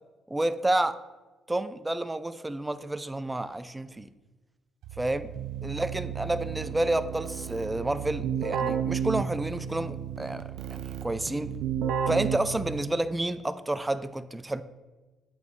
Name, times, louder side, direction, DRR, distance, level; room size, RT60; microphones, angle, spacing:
voice 1, 0.3-1.0 1.5-4.1 5.0-5.3 5.6-10.4 10.7-11.5 12.1-14.6, right 1 dB, 15° right, 13 dB, 0.3 m, -30 dB
Keyboard (musical), 4.8-13.1, right 8 dB, 85° right, 0.4 m, -33 dB
8.3 x 4.0 x 3.5 m, 1.2 s
cardioid pair, 90°, 0 cm